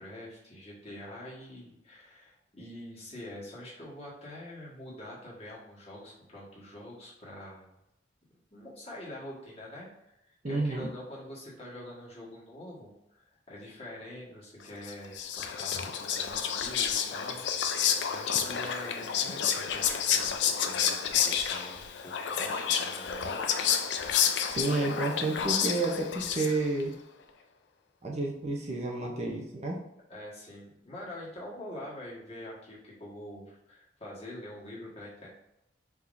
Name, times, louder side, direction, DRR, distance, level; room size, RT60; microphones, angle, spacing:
voice 1, 0.0-7.7 8.5-9.9 10.2-17.8 18.1-23.4 30.1-35.3, left 1 dB, 35° left, -6 dB, 1.6 m, -45 dB
voice 2, 10.4-10.9 24.4-26.9 28.0-29.8, right 2 dB, 35° right, -1 dB, 0.6 m, -30 dB
Whispering, 14.8-26.8, left 8 dB, 75° left, 0.5 m, -30 dB
4.8 x 3.6 x 2.6 m, 0.87 s
head